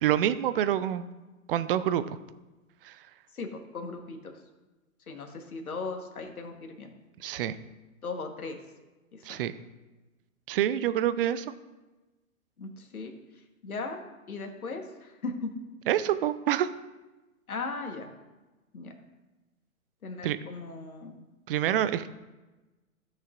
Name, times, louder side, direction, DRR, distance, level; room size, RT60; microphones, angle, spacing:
voice 1, 0.0-1.1 1.5-2.0 2.8-3.1 7.2-7.6 9.2-9.5 10.5-11.5 15.9-16.7 20.2-20.4 21.5-22.1, right 11 dB, 45° right, 14 dB, 0.5 m, -27 dB
voice 2, 3.3-4.4 5.1-6.9 8.0-8.6 9.1-9.4 12.6-13.1 13.6-14.0 14.3-15.5 17.5-18.1 18.7-18.9 20.0-21.2, left 3 dB, 80° left, 4 dB, 1.4 m, -37 dB
15.5 x 6.5 x 2.5 m, 1.1 s
figure-of-eight pair, 115°, 42 cm